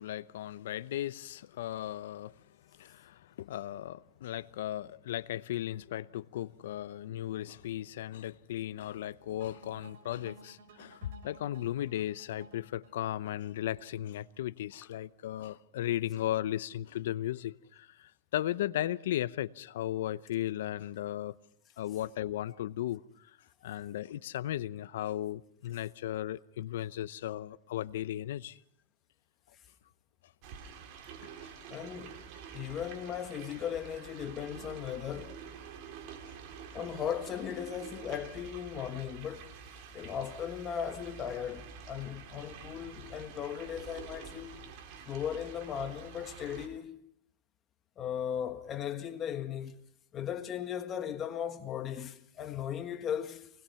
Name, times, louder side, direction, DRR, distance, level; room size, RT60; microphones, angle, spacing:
voice 1, 0.0-2.4 2.7-21.3 21.8-23.0 23.6-28.6 31.4-31.5, left 13 dB, 75° left, 0.7 m, -36 dB
sound 1, 9.4-14.5, right 4 dB, 65° right, 6.1 m, -56 dB
sound 2, 30.4-46.7, right 6 dB, 50° right, 3.3 m, -48 dB
voice 2, 31.7-32.2 32.5-35.4 36.7-39.5 39.9-44.5 45.1-47.0 48.0-49.7 50.1-53.5, left 9 dB, 30° left, 1.5 m, -37 dB
24.5 x 20.0 x 5.7 m
supercardioid pair, 140°, 0 cm